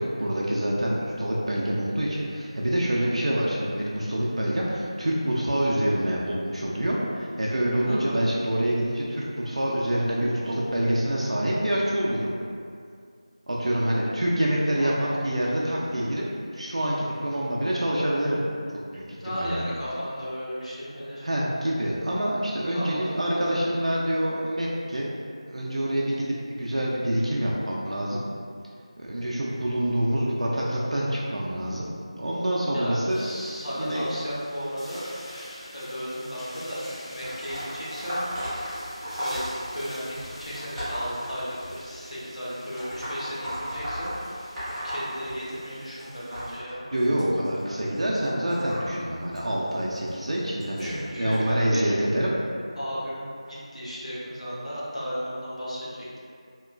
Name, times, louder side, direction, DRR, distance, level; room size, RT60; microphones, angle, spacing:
voice 1, 0.0-12.3 13.5-16.2 16.5-18.4 18.9-19.6 21.2-25.1 25.5-28.2 29.0-31.9 32.2-33.2 33.7-34.1 46.9-50.9 51.2-52.3, right 1 dB, 70° right, -5 dB, 0.4 m, -26 dB
voice 2, 7.9-8.2 14.8-15.1 19.2-21.2 22.7-23.5 32.7-35.1 35.7-36.8 37.1-38.4 39.2-39.4 39.7-44.2 44.8-46.8 50.8-52.0 52.8-56.2, equal, 75° left, -8 dB, 0.9 m, -35 dB
sound 1, 33.1-46.6, left 1 dB, 55° left, 1.1 m, -46 dB
sound 2, 36.8-41.9 42.7-45.7 46.0-51.4 52.1-52.4 53.4-53.5 54.4-54.5 55.2-55.3, equal, ahead, 0.5 m, -36 dB
2.9 x 2.3 x 2.2 m, 2.3 s
figure-of-eight pair, 175°, 3 cm